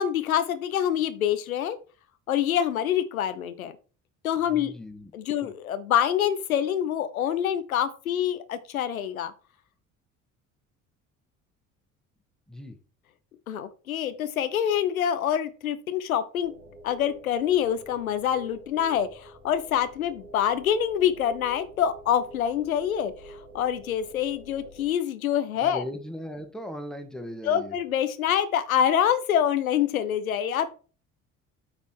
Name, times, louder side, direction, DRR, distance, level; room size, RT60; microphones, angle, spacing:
voice 1, 0.0-1.8 2.3-3.7 4.2-4.7 5.1-9.3 13.5-16.5 16.8-25.8 27.4-30.7, left 9 dB, 85° left, 12 dB, 0.6 m, -26 dB
voice 2, 4.5-5.1 5.4-5.5 12.5-12.7 25.6-27.8, left 1 dB, ahead, 5 dB, 1.5 m, -38 dB
sound 1, 16.4-24.9, right 1 dB, 70° right, 2.8 m, -48 dB
8.4 x 4.3 x 4.5 m, 0.37 s
figure-of-eight pair, 60°, 41 cm